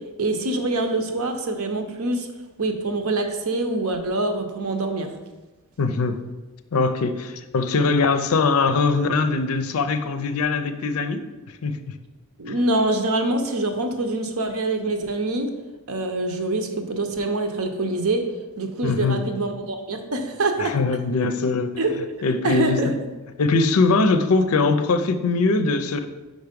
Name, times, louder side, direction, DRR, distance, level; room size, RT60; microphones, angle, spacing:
voice 1, 0.2-2.3 2.6-5.1 12.4-15.5 15.9-18.3 18.6-20.8 21.8-21.9 22.4-22.9, right 2 dB, 70° right, 5 dB, 0.8 m, -25 dB
voice 2, 5.8-6.2 6.7-11.2 11.6-12.0 18.8-19.2 20.6-21.7 22.2-22.9 23.4-26.0, left 3 dB, 65° left, 9 dB, 0.5 m, -21 dB
5.2 x 4.6 x 5.2 m, 1.2 s
head